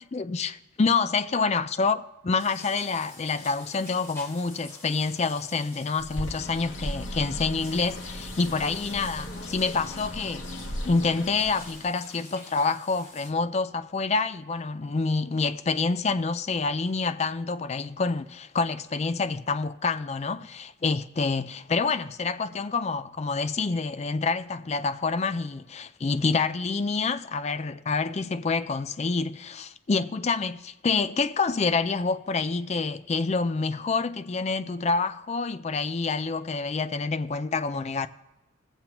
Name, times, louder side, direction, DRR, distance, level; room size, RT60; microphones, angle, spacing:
voice 1, 0.1-10.5 10.8-38.1, left 4 dB, 35° left, 0.4 m, -27 dB
sound 1, 2.4-13.3, left 2 dB, 15° left, 1.5 m, -48 dB
Bird, 6.0-11.9, equal, 70° left, 1.1 m, -37 dB
20.0 x 7.3 x 2.9 m
head